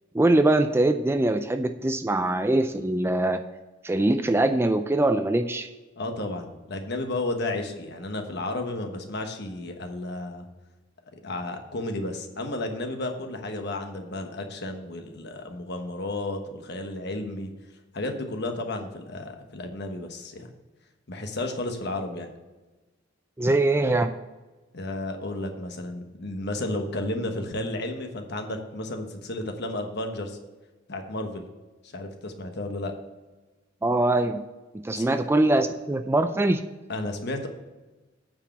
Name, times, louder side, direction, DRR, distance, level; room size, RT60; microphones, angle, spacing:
voice 1, 0.1-3.4 3.8-5.7 23.4-24.1 33.8-34.4 34.7-36.6, right 2 dB, 10° right, 8 dB, 0.3 m, -22 dB
voice 2, 6.0-10.5 11.2-17.5 17.9-20.5 21.1-22.3 24.7-30.4 30.9-31.5 31.9-32.9 34.9-35.1 36.9-37.5, left 2 dB, 55° left, 5 dB, 1.2 m, -32 dB
8.9 x 4.8 x 7.2 m, 1.2 s
head